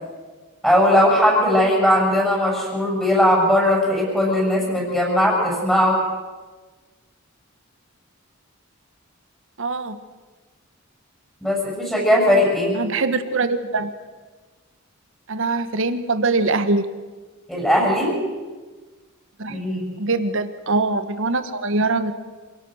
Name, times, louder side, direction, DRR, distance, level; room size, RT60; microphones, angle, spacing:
voice 1, 0.6-6.0 11.4-12.8 17.5-18.2 19.5-19.9, left 1 dB, 5° left, -3 dB, 7.1 m, -18 dB
voice 2, 9.6-10.0 12.7-13.9 15.3-16.9 19.4-19.6 20.0-22.1, right 3 dB, 65° right, 11 dB, 1.3 m, -22 dB
27.0 x 18.0 x 6.4 m, 1.3 s
head